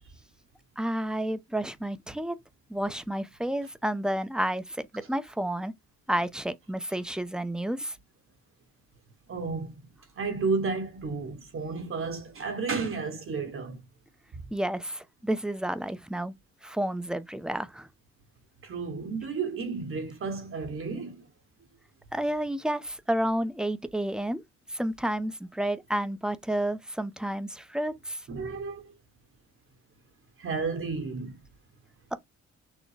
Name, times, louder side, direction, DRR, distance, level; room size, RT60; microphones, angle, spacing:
voice 1, 0.8-2.4 2.7-5.7 6.1-8.0 14.5-16.3 16.6-17.9 22.1-24.4 24.7-28.2 32.1-32.2, right 1 dB, 5° right, 0.6 m, -30 dB
voice 2, 9.3-9.8 10.2-13.8 18.6-21.2 28.3-28.9 30.4-31.4, right 4 dB, 45° right, 1.0 m, -32 dB
6.3 x 2.1 x 3.2 m
cardioid pair, 90°, 30 cm